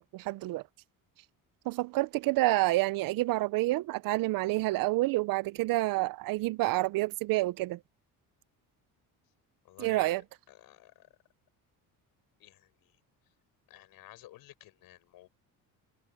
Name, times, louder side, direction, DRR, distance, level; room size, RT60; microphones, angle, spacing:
voice 1, 0.1-0.6 1.7-7.8 9.8-10.2, right 19 dB, 65° right, 0.5 m, -28 dB
voice 2, 9.6-10.2 10.5-11.2 12.4-13.0 13.7-15.3, left 15 dB, 70° left, 6.7 m, -53 dB
cardioid pair, 170°, 37 cm